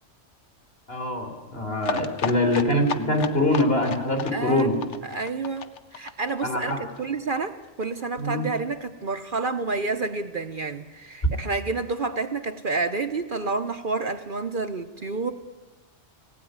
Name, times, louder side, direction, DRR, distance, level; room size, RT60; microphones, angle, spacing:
voice 1, 0.9-4.8 6.4-6.9 8.2-8.5, left 1 dB, 50° left, 3 dB, 3.7 m, -24 dB
sound 1, 1.8-7.4 7.6-7.7 8.0-8.1 8.3-8.4, left 6 dB, 70° left, 1.3 m, -34 dB
voice 2, 4.3-15.3, right 3 dB, 45° right, 8 dB, 1.0 m, -29 dB
19.5 x 16.5 x 9.5 m, 1.2 s
omnidirectional pair, 1.3 m